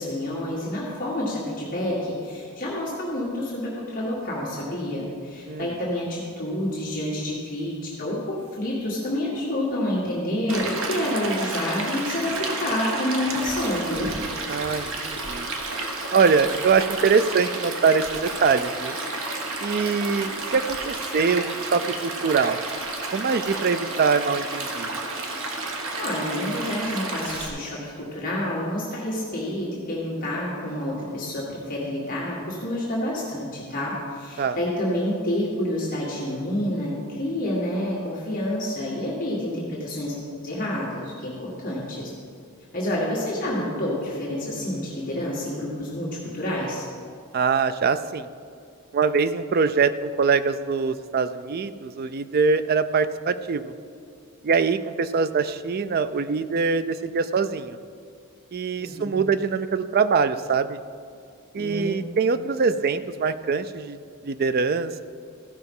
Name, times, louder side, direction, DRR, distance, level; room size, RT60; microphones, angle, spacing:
voice 1, 0.0-14.1 26.0-40.2 40.4-42.1 42.7-46.8 58.8-59.0 61.6-62.1, left 1 dB, 40° left, -6 dB, 1.9 m, -28 dB
Stream, 10.5-27.5, right 2 dB, 60° right, 1.2 m, -31 dB
voice 2, 14.5-15.5 16.1-19.0 19.6-22.6 23.1-24.9 34.4-34.6 47.3-48.3 48.9-53.7 54.4-57.8 58.5-60.8 61.5-65.0, right 5 dB, 45° right, 12 dB, 0.4 m, -23 dB
14.5 x 5.7 x 5.4 m, 2.3 s
head